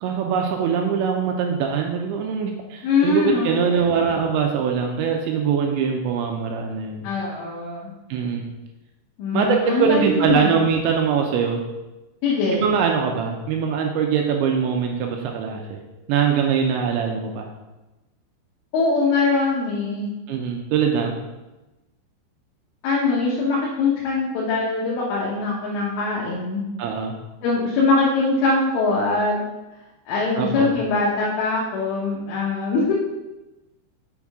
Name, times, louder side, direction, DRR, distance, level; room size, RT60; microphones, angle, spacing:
voice 1, 0.0-7.0 8.1-8.5 9.3-11.6 12.5-15.8 16.1-17.5 20.3-21.2 26.8-27.1 30.4-30.7, right 6 dB, 80° right, 2 dB, 2.9 m, -22 dB
voice 2, 2.8-4.1 7.0-7.9 9.2-10.6 12.2-12.6 18.7-20.1 22.8-26.6 27.4-29.4 30.1-32.9, left 3 dB, 85° left, -6 dB, 3.7 m, -22 dB
7.3 x 6.2 x 3.6 m, 1.0 s
omnidirectional pair, 5.5 m